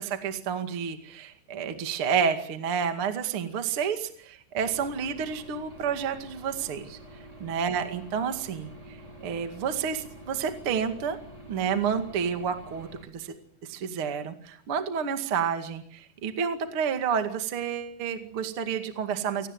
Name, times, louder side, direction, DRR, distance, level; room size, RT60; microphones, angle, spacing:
voice 1, 0.0-7.0 7.4-8.7 9.2-11.2 11.5-13.4 13.6-19.5, right 7 dB, 40° right, 7 dB, 2.2 m, -30 dB
Aircraft / Engine, 4.6-13.0, right 1 dB, 10° right, 3.9 m, -47 dB
28.5 x 18.5 x 7.9 m, 0.65 s
omnidirectional pair, 4.9 m